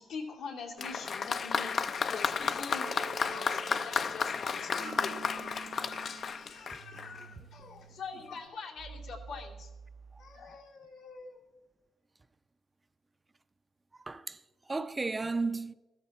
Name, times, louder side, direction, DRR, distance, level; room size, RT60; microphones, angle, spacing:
voice 1, 0.0-9.7 10.2-11.4, left 4 dB, 80° left, 2.8 m, -44 dB
Applause, 0.8-7.3 8.2-8.3, left 5 dB, 50° left, 0.6 m, -33 dB
sound 1, 2.8-10.6, right 7 dB, 75° right, 0.6 m, -50 dB
voice 2, 14.0-15.7, right 3 dB, 20° right, 0.5 m, -34 dB
14.0 x 13.5 x 4.3 m
cardioid pair, 90°, 0 cm